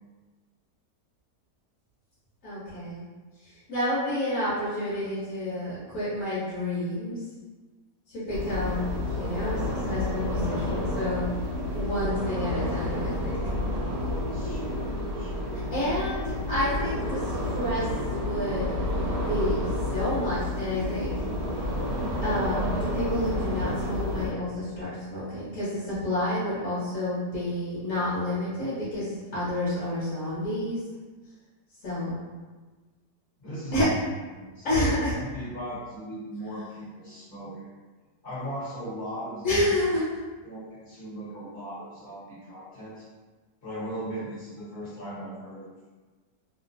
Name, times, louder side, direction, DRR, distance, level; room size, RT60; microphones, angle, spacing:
voice 1, 2.4-3.0 3.7-7.2 8.1-9.6 9.8-11.2 11.7-13.4 15.7-17.2 17.5-17.8 18.1-18.8 19.2-19.6 19.9-21.1 22.2-22.7 22.9-30.8 31.8-32.2 33.7-33.9 34.6-35.1 39.4-40.0, left 1 dB, 55° left, -11 dB, 1.0 m, -29 dB
sound 1, 8.3-24.3, left 1 dB, 80° right, 1.2 m, -30 dB
voice 2, 14.3-14.9 15.1-15.6 33.4-33.9 34.3-37.7 38.2-39.8 40.4-43.0 43.6-45.7, right 1 dB, 40° left, -10 dB, 1.0 m, -38 dB
3.0 x 2.0 x 2.5 m, 1.3 s
omnidirectional pair, 1.8 m